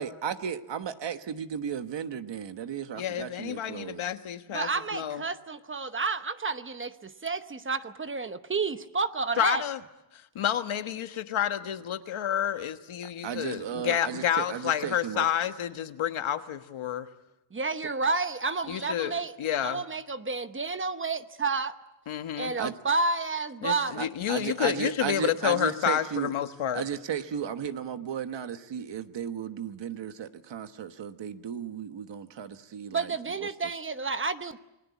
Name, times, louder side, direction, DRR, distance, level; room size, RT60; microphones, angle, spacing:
voice 1, 0.0-4.0 13.2-15.3 22.6-22.7 24.0-26.3 26.7-33.1 33.4-33.5, right 8 dB, 60° right, 9 dB, 1.4 m, -34 dB
voice 2, 2.9-5.2 9.4-9.8 10.3-17.1 18.7-19.8 22.1-22.5 23.6-26.8, left 10 dB, 70° left, 9 dB, 1.4 m, -29 dB
voice 3, 4.5-9.6 17.5-19.3 19.6-21.7 22.3-24.1 32.9-34.6, right 4 dB, 25° right, 10 dB, 0.9 m, -30 dB
28.5 x 21.0 x 8.4 m, 0.93 s
wide cardioid pair, 160°, 50 cm